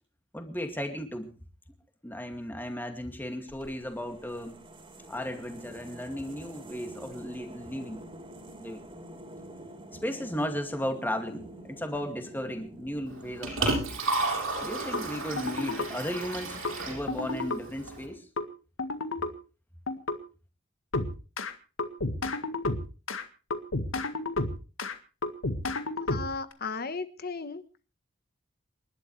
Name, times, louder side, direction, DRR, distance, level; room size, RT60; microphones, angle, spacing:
voice 1, 0.3-1.3 2.0-4.6 5.1-8.0 8.6-8.8 10.0-13.8 14.6-16.6 16.9-18.3, equal, 10° left, 5 dB, 2.3 m, -35 dB
sound 1, 3.5-14.6, right 1 dB, 25° right, 3.7 m, -48 dB
Liquid, 13.1-18.1, right 2 dB, 90° right, 7.3 m, -33 dB
sound 2, 14.9-15.0 15.4-15.9 16.6-16.7 17.1-17.6 18.4-18.5 18.8-19.3 19.9-20.2 20.9-21.5 21.8-23.2 23.5-24.9 25.2-26.5, left 2 dB, 80° left, 1.8 m, -31 dB
voice 2, 26.1-27.6, left 4 dB, 50° left, 11 dB, 1.2 m, -35 dB
28.5 x 12.0 x 3.3 m, 0.35 s
head